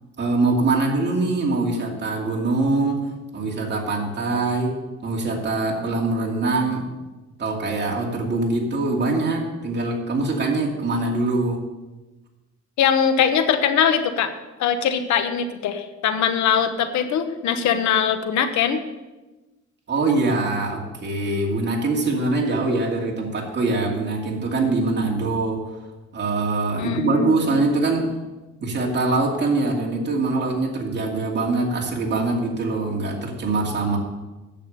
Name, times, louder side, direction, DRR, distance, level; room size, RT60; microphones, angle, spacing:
voice 1, 0.2-3.1 3.3-4.8 5.0-6.9 7.4-11.6 19.9-25.6 26.1-28.1 28.6-34.0, right 3 dB, 35° right, -1 dB, 2.5 m, -23 dB
voice 2, 12.8-14.3 14.6-18.8 26.8-27.6, left 8 dB, 75° left, 8 dB, 1.2 m, -21 dB
9.1 x 7.0 x 6.9 m, 1.1 s
cardioid pair, 105°, 29 cm